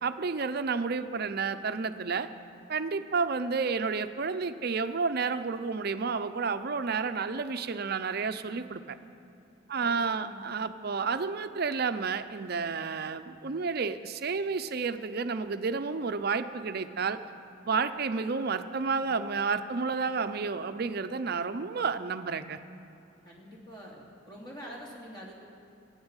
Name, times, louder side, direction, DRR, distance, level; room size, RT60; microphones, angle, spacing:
voice 1, 0.0-2.3 2.7-9.0 9.7-17.2 17.7-22.6, right 5 dB, 50° right, 10 dB, 0.6 m, -31 dB
voice 2, 9.7-10.8 23.2-25.3, equal, 20° left, -3 dB, 2.7 m, -46 dB
15.5 x 8.8 x 8.9 m, 2.8 s
head